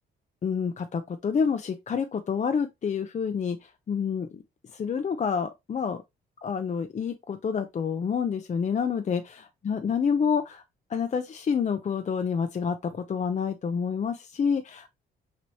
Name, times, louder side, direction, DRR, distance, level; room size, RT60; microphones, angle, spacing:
voice 1, 0.4-4.4 4.7-6.0 6.4-10.6 10.9-14.9, left 6 dB, 35° left, 0.6 m, -28 dB
6.1 x 3.0 x 2.8 m
cardioid pair, 90°, 20 cm